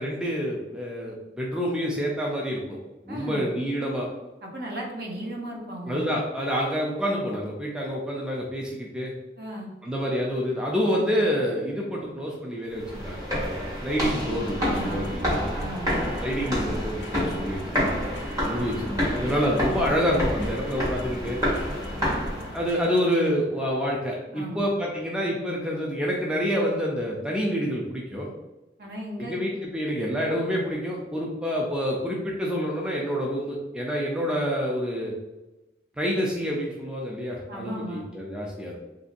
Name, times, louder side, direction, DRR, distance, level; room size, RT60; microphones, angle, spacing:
voice 1, 0.0-2.8 3.1-4.1 5.8-9.1 9.8-15.5 16.2-18.1 18.5-21.4 22.5-28.3 29.2-35.1 36.0-38.8, equal, 5° right, -3 dB, 0.3 m, -28 dB
voice 2, 3.1-3.5 4.4-6.1 9.4-9.7 14.6-15.1 15.5-16.1 24.3-24.7 28.8-29.4 37.5-38.1, right 1 dB, 55° right, -1 dB, 0.6 m, -35 dB
sound 1, 11.9-23.6, left 1 dB, 75° left, 0.4 m, -44 dB
sound 2, 12.7-22.8, equal, 20° right, 1.1 m, -29 dB
2.9 x 2.6 x 2.5 m, 1.1 s
head